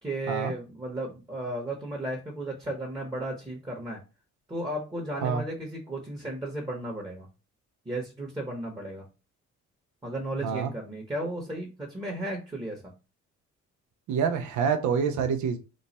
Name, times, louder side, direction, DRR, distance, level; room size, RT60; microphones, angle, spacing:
voice 1, 0.0-4.0 4.5-7.3 7.8-9.0 10.0-12.9, right 1 dB, 15° right, -1 dB, 1.0 m, -34 dB
voice 2, 14.1-15.6, right 6 dB, 75° right, 7 dB, 0.6 m, -26 dB
3.1 x 2.2 x 4.0 m, 0.30 s
cardioid pair, 90°, 30 cm